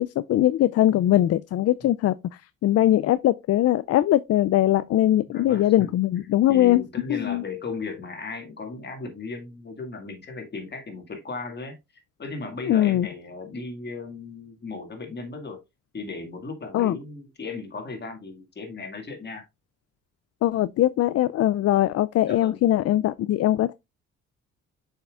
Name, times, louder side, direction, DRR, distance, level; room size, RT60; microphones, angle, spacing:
voice 1, 0.0-2.1 2.6-6.8 7.1-7.4 12.7-13.1 16.7-17.0 20.4-23.7, left 13 dB, 55° left, 0.4 m, -21 dB
voice 2, 5.3-6.0 6.5-11.8 12.2-15.6 15.9-19.4 22.2-22.6, left 3 dB, 35° left, 2.0 m, -36 dB
7.0 x 5.7 x 2.4 m
cardioid pair, 90°, 30 cm